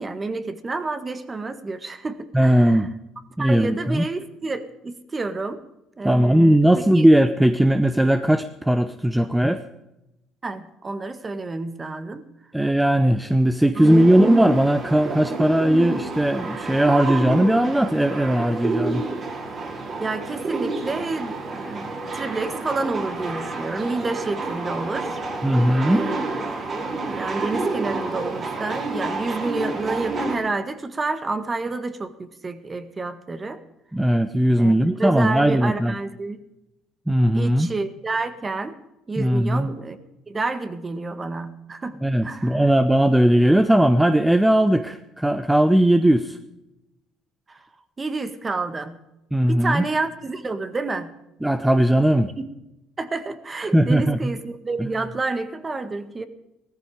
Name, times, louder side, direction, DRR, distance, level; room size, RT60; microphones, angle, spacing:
voice 1, 0.0-2.9 3.4-5.6 6.0-6.6 6.9-7.1 10.4-12.3 13.8-13.9 20.0-25.2 25.9-26.2 27.1-33.6 34.6-34.7 35.0-36.4 37.3-38.8 39.1-40.0 40.3-42.0 42.2-42.7 47.5-47.6 48.0-49.0 49.5-51.1 52.4-52.5 53.0-56.3, right 3 dB, 25° right, 10 dB, 1.7 m, -29 dB
voice 2, 2.3-2.9 3.4-4.0 6.0-9.6 12.5-19.0 25.4-26.1 33.9-35.9 37.1-37.7 39.2-39.7 42.0-46.4 49.3-49.8 51.4-52.3 53.7-54.3 54.8-54.9, right 1 dB, 5° right, 9 dB, 0.9 m, -18 dB
sound 1, 13.8-30.4, right 3 dB, 40° right, 5.4 m, -29 dB
16.5 x 14.0 x 5.1 m, 0.90 s
supercardioid pair, 85°, 0 cm